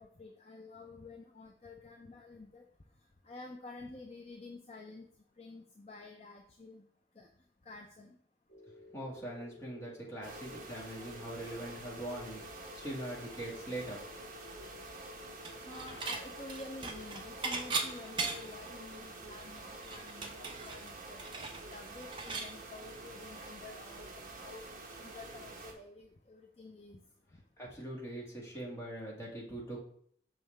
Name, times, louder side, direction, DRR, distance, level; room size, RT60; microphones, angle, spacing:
voice 1, 0.0-2.6 3.2-5.1 5.4-6.8 7.2-7.3 7.7-8.2 15.6-24.6 25.0-27.0, left 2 dB, 35° left, 2 dB, 0.5 m, -50 dB
sound 1, 8.5-19.0, left 7 dB, 65° left, 1.9 m, -55 dB
voice 2, 8.9-14.0 27.6-29.8, right 1 dB, 15° left, -4 dB, 1.7 m, -42 dB
sound 2, 10.2-25.7, right 3 dB, 45° right, 1.1 m, -48 dB
Dishes pots and pans / Chink clink, 15.4-16.2 16.5-18.6 19.0-19.1 19.4-22.5, right 4 dB, 30° right, 0.7 m, -38 dB
6.1 x 5.5 x 3.3 m, 0.64 s
head